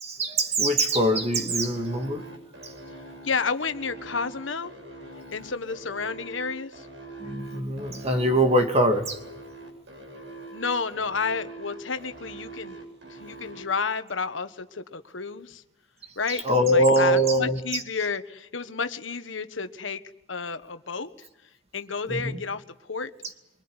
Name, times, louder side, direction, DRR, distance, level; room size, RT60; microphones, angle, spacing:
voice 1, 0.0-2.2 2.6-2.7 7.2-9.2 16.3-17.8 22.1-22.4, right 1 dB, 35° right, 5 dB, 2.5 m, -23 dB
sound 1, 1.1-13.6, right 2 dB, 70° right, 7.9 m, -43 dB
voice 2, 3.2-4.7 5.3-6.9 10.5-12.8 13.1-15.6 16.2-20.0 20.3-21.3 21.7-22.6 22.9-23.1, left 5 dB, 90° left, 9 dB, 1.4 m, -31 dB
25.0 x 24.0 x 9.8 m, 0.88 s
head